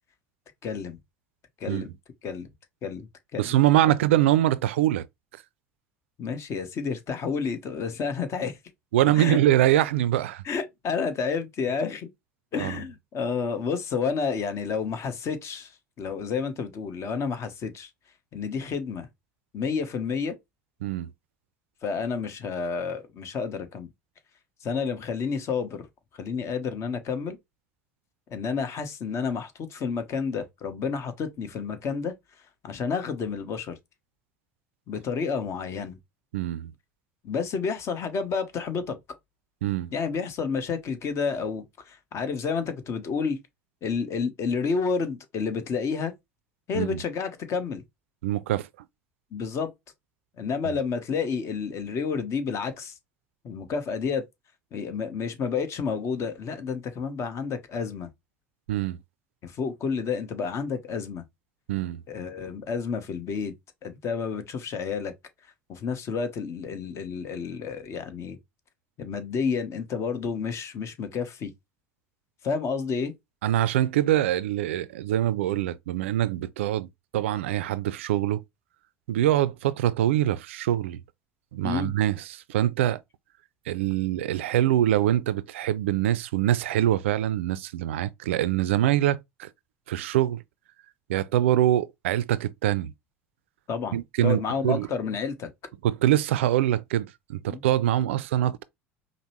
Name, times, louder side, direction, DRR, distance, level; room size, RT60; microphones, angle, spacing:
voice 1, 0.6-1.0 1.6-1.9 2.2-2.5 2.8-3.5 6.2-8.6 9.1-9.4 10.4-12.1 12.5-15.7 16.0-17.9 18.3-19.1 19.5-20.4 21.8-23.9 24.6-25.9 26.2-27.4 28.3-32.1 32.6-33.8 34.9-36.0 37.2-39.0 39.9-43.4 43.8-46.1 46.7-47.8 49.3-49.7 50.4-52.9 53.4-54.2 54.7-58.1 59.4-61.2 62.1-63.5 63.8-65.1 65.7-68.4 69.0-71.5 72.4-73.1 81.6-81.9 93.7-95.5 97.5-97.6 98.0-98.1, left 5 dB, 45° left, 0.9 m, -30 dB
voice 2, 3.4-5.0 8.9-10.4 12.6-12.8 20.8-21.1 36.3-36.7 39.6-39.9 46.7-47.0 48.2-48.7 58.7-59.0 61.7-62.0 73.4-78.4 79.1-81.0 81.5-83.0 83.7-89.5 89.9-90.4 91.1-92.9 93.9-94.9 95.8-98.6, right 13 dB, 75° right, 0.3 m, -24 dB
5.1 x 2.0 x 3.0 m
hypercardioid pair, 70°, 7 cm